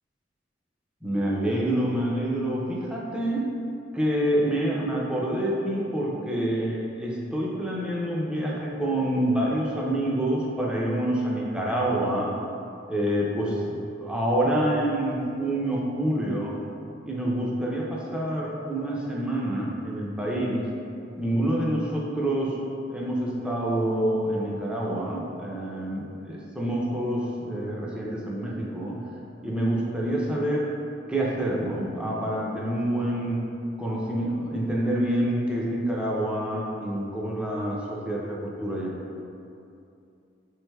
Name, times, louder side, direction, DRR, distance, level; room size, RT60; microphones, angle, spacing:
voice 1, 1.0-3.5 3.9-12.3 12.9-16.6 17.1-20.6 21.2-22.6 22.9-29.0 29.4-30.7 31.1-33.4 33.8-38.9, right 1 dB, 5° right, -4 dB, 0.4 m, -27 dB
4.7 x 3.1 x 2.2 m, 2.6 s
head